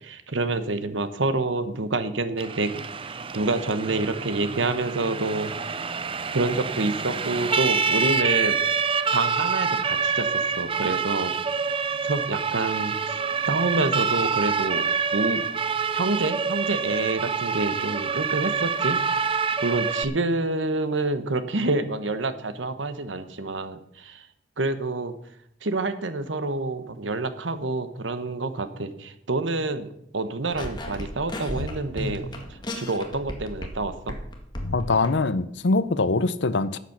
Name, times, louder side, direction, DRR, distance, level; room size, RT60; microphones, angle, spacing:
voice 1, 0.0-5.8 6.3-8.6 9.1-11.3 12.0-15.5 15.9-19.0 19.6-24.2 24.6-25.2 25.6-34.2, right 2 dB, 90° right, 11 dB, 1.1 m, -28 dB
Siren, 2.4-20.0, right 5 dB, 30° right, 0.6 m, -26 dB
sound 1, 30.5-33.8 34.1-35.1, left 1 dB, 25° left, 1.9 m, -33 dB
voice 2, 34.7-36.8, left 3 dB, 70° left, 14 dB, 0.7 m, -23 dB
12.0 x 8.3 x 6.0 m, 0.73 s
head